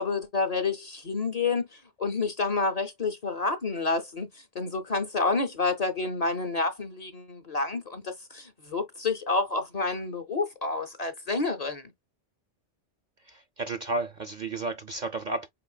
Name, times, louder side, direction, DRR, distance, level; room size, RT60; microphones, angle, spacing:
voice 1, 0.0-11.9, left 3 dB, 40° left, 0.6 m, -29 dB
voice 2, 13.3-15.5, right 3 dB, 55° right, 0.5 m, -32 dB
5.4 x 3.8 x 2.2 m
omnidirectional pair, 1.2 m